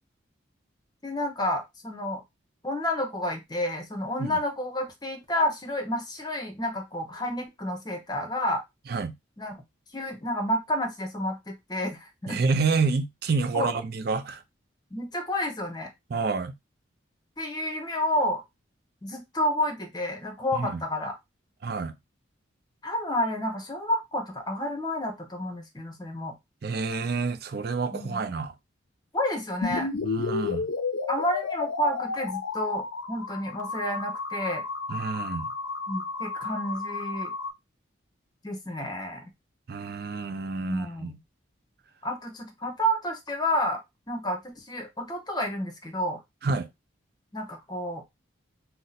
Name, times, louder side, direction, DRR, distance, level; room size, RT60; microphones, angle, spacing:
voice 1, 1.0-2.2 2.6-8.6 9.4-9.5 9.9-12.4 13.5-13.8 14.9-15.9 17.4-18.4 19.0-21.2 22.8-26.3 27.9-28.2 29.1-29.9 31.1-34.6 35.9-37.3 38.4-39.3 40.6-41.2 42.0-43.8 44.1-46.2 47.3-48.0, left 1 dB, 20° left, 0.7 m, -30 dB
voice 2, 12.3-14.4 16.1-16.5 20.5-20.8 21.6-22.0 26.6-28.5 30.0-30.7 34.9-35.5 39.7-41.1 46.4-46.7, right 4 dB, 50° right, 0.4 m, -28 dB
sound 1, 29.6-37.5, left 4 dB, 85° left, 0.4 m, -32 dB
2.6 x 2.1 x 4.0 m
head